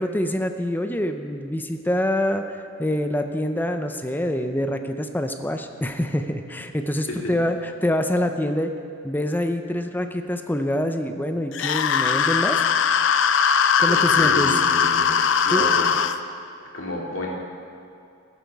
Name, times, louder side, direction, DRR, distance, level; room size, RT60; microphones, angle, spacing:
voice 1, 0.0-8.7 9.0-12.6 13.8-14.5 15.5-15.7, left 1 dB, 10° left, 6 dB, 0.6 m, -25 dB
sound 1, 11.5-16.2, left 6 dB, 65° left, 0.5 m, -20 dB
voice 2, 13.9-15.1 15.4-16.0 16.7-17.3, left 1 dB, 85° left, -2 dB, 2.4 m, -30 dB
14.5 x 10.5 x 4.7 m, 2.5 s
head